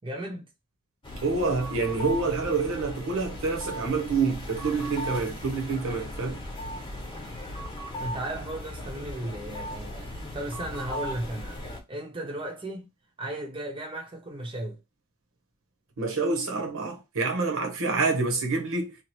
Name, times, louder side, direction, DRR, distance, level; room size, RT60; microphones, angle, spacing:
voice 1, 0.0-0.5 8.0-12.9 13.2-14.8, right 1 dB, 25° right, 0.6 m, -35 dB
sound 1, 1.0-11.8, equal, 25° left, 0.9 m, -37 dB
voice 2, 1.2-6.4 16.0-18.9, right 4 dB, 65° right, 0.9 m, -27 dB
2.9 x 2.3 x 3.0 m
head